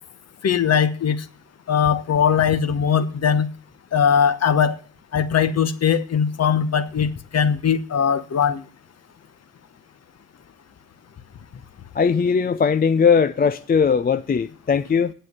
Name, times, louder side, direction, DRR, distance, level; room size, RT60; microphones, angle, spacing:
voice 1, 0.4-1.2 1.7-3.5 3.9-4.8 5.1-8.6, left 7 dB, 45° left, 1.1 m, -20 dB
voice 2, 11.9-15.1, left 6 dB, 25° left, 0.5 m, -19 dB
8.1 x 7.9 x 7.1 m
supercardioid pair, 65°, 36 cm